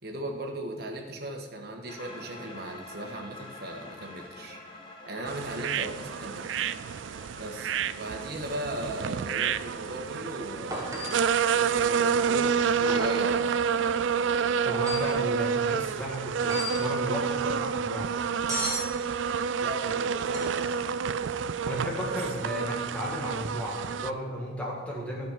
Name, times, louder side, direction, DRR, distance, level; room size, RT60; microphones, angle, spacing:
voice 1, 0.0-4.6 5.1-6.7 7.4-10.9 11.5-13.5 19.6-20.7 22.0-22.2, right 1 dB, 55° right, 2 dB, 1.5 m, -37 dB
sound 1, 1.9-13.3, left 2 dB, 25° left, 1.4 m, -48 dB
sound 2, 5.3-24.1, right 6 dB, 75° right, 0.4 m, -29 dB
sound 3, 10.7-11.3 12.9-13.3 14.7-15.2 16.4-16.9 18.5-18.9 20.3-20.7 23.5-23.6, equal, 15° right, 1.4 m, -35 dB
voice 2, 14.6-18.1 21.5-25.3, equal, 5° left, -4 dB, 1.7 m, -34 dB
12.0 x 5.3 x 7.4 m, 1.4 s
head